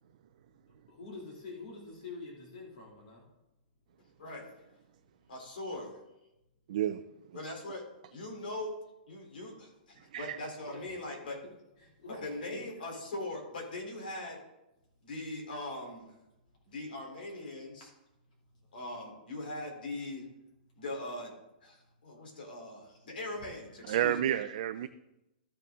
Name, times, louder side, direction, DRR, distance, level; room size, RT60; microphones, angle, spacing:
voice 1, 0.9-3.2 10.6-10.8 11.4-11.5 11.8-12.6 22.9-23.0, left 3 dB, 55° left, -3 dB, 2.7 m, -46 dB
voice 2, 5.3-6.0 7.3-7.8 8.1-8.8 9.1-11.4 12.1-14.4 15.0-16.2 16.7-17.9 18.7-20.2 20.8-21.3 21.6-24.2, left 2 dB, 85° left, 1 dB, 3.6 m, -40 dB
voice 3, 6.7-7.0 10.1-10.4 23.9-24.9, right 11 dB, 45° right, 9 dB, 0.4 m, -30 dB
13.5 x 6.7 x 3.7 m, 0.92 s
hypercardioid pair, 175°, 5 cm